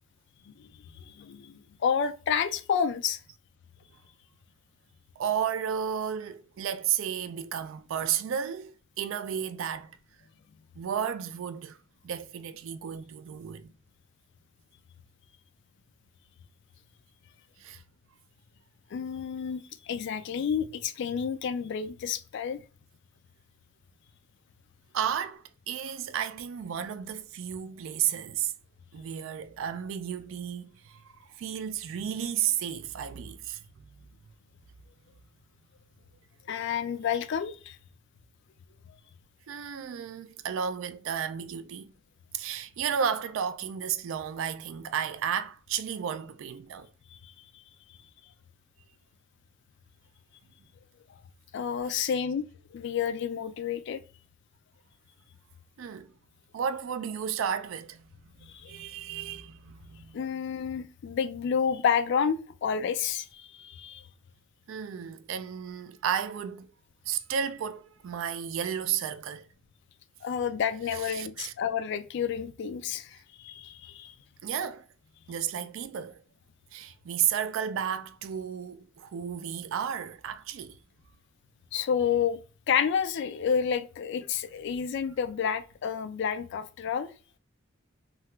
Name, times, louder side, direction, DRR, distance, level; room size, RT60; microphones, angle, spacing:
voice 1, 1.0-3.2 18.9-22.6 36.5-37.8 47.1-47.3 51.5-52.5 52.7-54.0 58.5-58.7 60.1-64.1 70.2-74.1 81.7-82.4 82.7-87.1, left 7 dB, 55° left, 0.3 m, -30 dB
voice 2, 5.2-10.0 10.8-11.8 12.0-13.7 17.6-17.8 24.9-28.5 28.9-34.1 39.5-41.9 42.3-46.9 51.9-52.2 55.8-56.1 56.5-58.1 58.4-60.2 64.7-66.7 67.1-69.5 70.8-71.5 74.4-74.9 75.3-76.2 76.7-80.8, right 8 dB, 70° right, 0.3 m, -33 dB
2.8 x 2.3 x 3.1 m
head